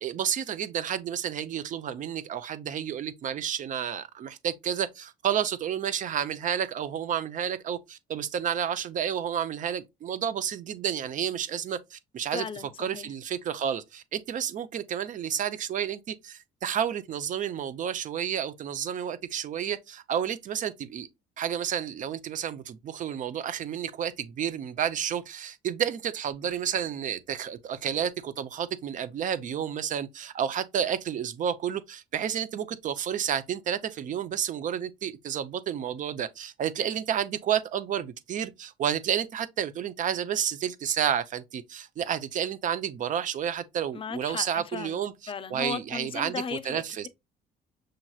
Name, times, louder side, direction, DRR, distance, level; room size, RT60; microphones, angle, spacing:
voice 1, 0.0-12.5 12.8-21.1 21.4-47.1, right 9 dB, 50° right, 0.6 m, -31 dB
voice 2, 12.3-13.1 43.9-47.1, left 6 dB, 30° left, 0.5 m, -36 dB
6.3 x 2.9 x 2.3 m
cardioid pair, 110°, 17 cm